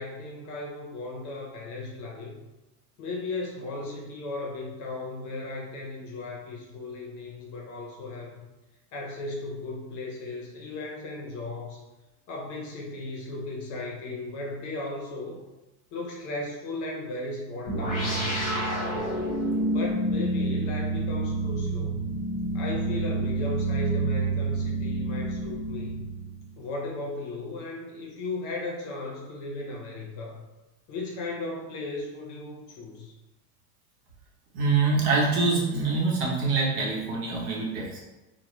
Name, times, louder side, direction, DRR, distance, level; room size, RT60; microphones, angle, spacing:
voice 1, 0.0-2.4 3.0-8.4 8.9-11.8 12.3-15.4 15.9-19.2 19.7-22.0 22.5-26.0 26.6-30.4 30.9-33.1, left 2 dB, 40° left, -2 dB, 0.6 m, -36 dB
sound 1, 17.7-26.5, right 2 dB, 15° left, 0.9 m, -28 dB
voice 2, 34.5-38.0, right 4 dB, 65° right, -3 dB, 1.0 m, -25 dB
2.2 x 2.2 x 3.0 m, 1.0 s
supercardioid pair, 135°, 47 cm